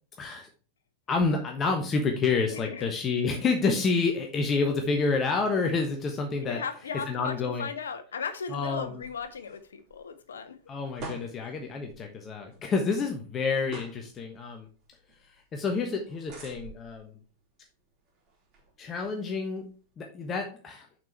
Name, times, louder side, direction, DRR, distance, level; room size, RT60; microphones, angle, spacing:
voice 1, 0.2-0.5 1.1-6.6 7.1-7.7 8.5-9.0 10.7-14.7 15.3-17.1 18.8-19.6 20.0-20.9, left 4 dB, 25° left, 3 dB, 1.2 m, -28 dB
voice 2, 2.5-2.9 6.4-10.6, left 6 dB, 65° left, 9 dB, 1.2 m, -37 dB
sound 1, 8.7-19.9, right 3 dB, 40° right, 3.9 m, -50 dB
7.4 x 6.0 x 4.5 m, 0.38 s
figure-of-eight pair, 90°, 0 cm